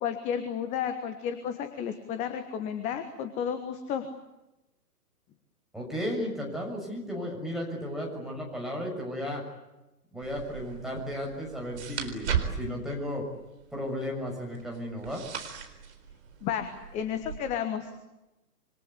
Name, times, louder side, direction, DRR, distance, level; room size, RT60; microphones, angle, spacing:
voice 1, 0.0-4.1 16.4-17.9, left 8 dB, 15° left, 9 dB, 1.3 m, -32 dB
voice 2, 5.7-9.4 10.1-13.2 13.7-15.2, equal, ahead, -2 dB, 6.7 m, -34 dB
sound 1, 10.2-17.4, right 8 dB, 45° right, 4.4 m, -37 dB
27.0 x 25.0 x 8.4 m, 0.98 s
figure-of-eight pair, 125°, 48 cm